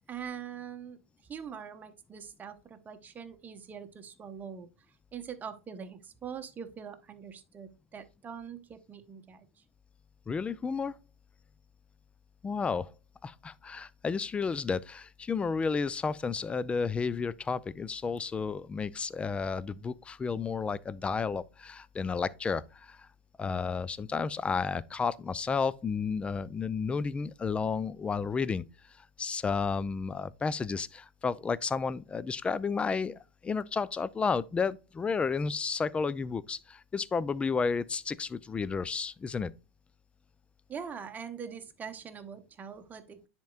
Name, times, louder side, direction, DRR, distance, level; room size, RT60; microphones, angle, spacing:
voice 1, 0.1-1.0 1.3-4.7 5.1-9.4 40.7-43.2, right 7 dB, 25° right, 1.0 m, -43 dB
voice 2, 10.3-10.9 12.4-12.9 13.2-23.0 23.4-28.7 29.2-39.5, left 5 dB, 15° left, 0.4 m, -32 dB
10.0 x 4.4 x 2.4 m
hypercardioid pair, 95°, 7 cm